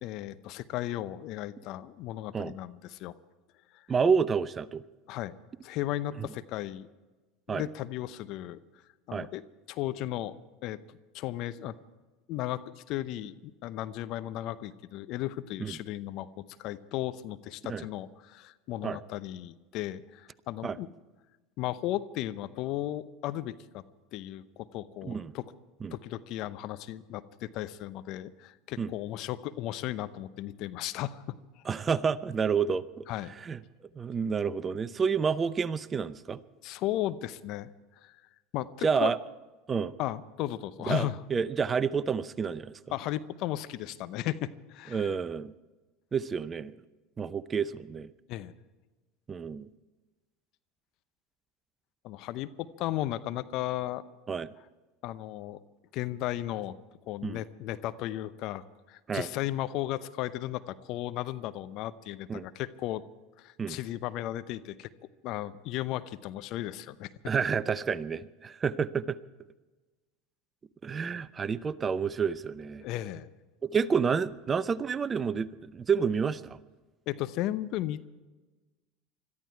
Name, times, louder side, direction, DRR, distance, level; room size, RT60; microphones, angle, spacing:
voice 1, 0.0-3.1 3.7-3.8 5.1-5.3 5.6-6.9 7.5-8.6 9.1-9.4 9.7-10.3 10.6-10.8 11.1-11.8 12.3-20.9 21.6-23.8 24.1-25.5 25.9-31.6 33.1-33.4 36.6-37.7 38.0-38.2 38.5-39.1 40.0-41.2 42.9-45.1 48.3-48.5 52.0-54.0 55.0-55.6 55.9-56.8 57.1-63.0 63.4-64.9 65.2-67.3 72.8-73.3 77.1-78.0, left 14 dB, 55° left, 14 dB, 0.8 m, -35 dB
voice 2, 3.9-4.8 6.2-6.3 7.5-7.6 9.1-9.3 15.6-15.8 17.7-17.8 18.8-19.0 20.6-20.8 25.0-25.3 25.8-25.9 28.8-28.9 31.6-33.1 33.4-33.6 34.0-36.4 38.8-39.2 39.7-39.9 40.9-42.8 44.9-45.5 46.1-46.8 47.2-48.1 49.3-49.7 54.3-54.5 57.2-57.4 59.1-59.3 62.3-62.5 63.6-63.8 67.2-69.2 70.8-72.9 73.6-76.6, right 6 dB, 30° right, 16 dB, 0.7 m, -29 dB
22.0 x 13.5 x 4.6 m, 1.2 s
hypercardioid pair, 85°, 0 cm